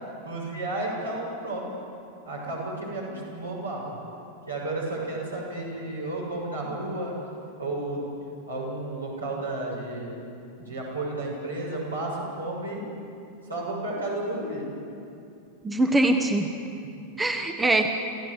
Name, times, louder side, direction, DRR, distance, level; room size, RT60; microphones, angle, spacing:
voice 1, 0.2-1.6 2.3-4.0 4.5-7.1 7.6-8.2 8.5-10.1 10.6-12.9 13.4-14.7 16.6-17.0, right 2 dB, 75° right, -3 dB, 7.1 m, -32 dB
voice 2, 15.6-16.5 17.2-17.9, right 2 dB, 10° right, 6 dB, 1.3 m, -22 dB
28.0 x 15.5 x 8.2 m, 2.6 s
figure-of-eight pair, 90°, 0 cm